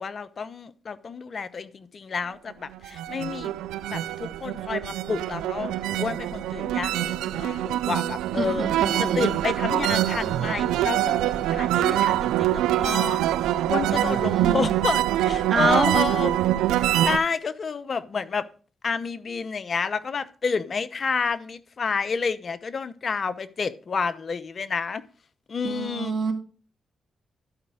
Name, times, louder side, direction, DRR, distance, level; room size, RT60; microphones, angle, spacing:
voice 1, 0.0-3.5 3.9-8.7 9.0-13.2 13.7-16.4 16.7-18.5 18.8-25.0 25.5-26.1, left 5 dB, 55° left, 0.8 m, -30 dB
sound 1, 2.7-17.2, right 13 dB, 90° right, 0.3 m, -25 dB
voice 2, 8.4-9.3 13.9-14.7 15.5-15.9 25.6-26.3, right 5 dB, 60° right, 1.8 m, -27 dB
11.5 x 5.1 x 4.9 m
supercardioid pair, 50°, 0 cm